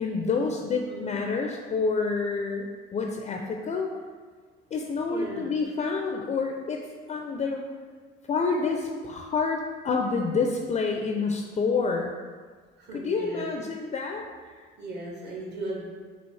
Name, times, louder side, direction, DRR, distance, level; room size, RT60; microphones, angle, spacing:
voice 1, 0.0-3.9 4.7-6.8 7.1-7.7 8.3-12.2 12.9-14.6, left 4 dB, 30° left, 2 dB, 0.4 m, -28 dB
voice 2, 0.9-1.2 5.1-5.5 12.8-13.5 14.8-15.9, right 2 dB, 55° right, -3 dB, 1.4 m, -37 dB
5.3 x 2.8 x 3.2 m, 1.5 s
cardioid pair, 105°, 21 cm